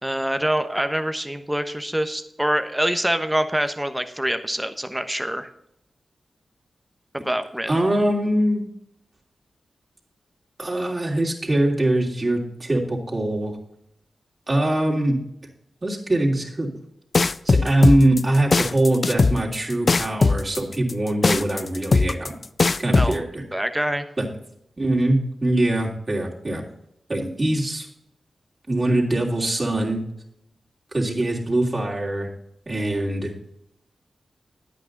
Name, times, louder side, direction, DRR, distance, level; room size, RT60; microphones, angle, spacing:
voice 1, 0.0-5.5 7.1-7.7 22.9-23.2 23.5-24.1, right 1 dB, 10° right, 9 dB, 1.1 m, -25 dB
voice 2, 7.7-8.6 10.6-13.5 14.5-15.2 15.8-16.7 17.4-22.4 22.8-23.4 24.2-24.3 24.8-26.6 27.1-27.9 28.7-30.0 30.9-32.3 32.7-33.3, right 1 dB, 35° right, -2 dB, 3.1 m, -22 dB
sound 1, 17.1-23.1, left 3 dB, 55° left, 0.4 m, -19 dB
10.0 x 8.6 x 4.0 m, 0.77 s
cardioid pair, 40°, 0 cm